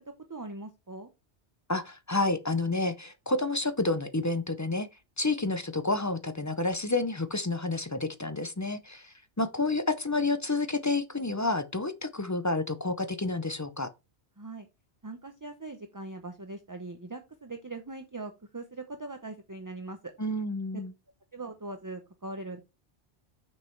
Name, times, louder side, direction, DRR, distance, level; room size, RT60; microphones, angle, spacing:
voice 1, 0.1-1.1 14.4-14.7 15.0-20.1 21.3-22.6, right 2 dB, 20° right, 0.7 m, -41 dB
voice 2, 1.7-4.9 5.2-13.9 20.2-20.9, left 2 dB, 20° left, 0.5 m, -29 dB
6.4 x 5.4 x 4.4 m
omnidirectional pair, 1.1 m